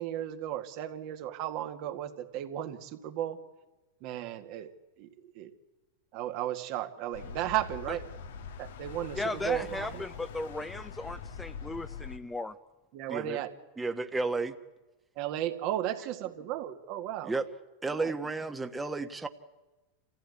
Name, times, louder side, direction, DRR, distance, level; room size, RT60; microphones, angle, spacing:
voice 1, 0.0-3.4 4.0-5.5 6.1-8.1 8.6-10.0 12.9-13.5 15.2-17.3 17.9-18.1, right 12 dB, 55° right, 6 dB, 1.9 m, -35 dB
sound 1, 7.1-12.2, left 6 dB, 75° left, 1.5 m, -43 dB
voice 2, 9.2-12.5, left 2 dB, 10° left, 11 dB, 0.8 m, -36 dB
voice 3, 13.1-13.4 13.8-14.6 17.2-17.5 17.8-19.3, right 3 dB, 10° right, 8 dB, 1.3 m, -32 dB
27.5 x 15.0 x 9.7 m, 1.2 s
hypercardioid pair, 105°, 0 cm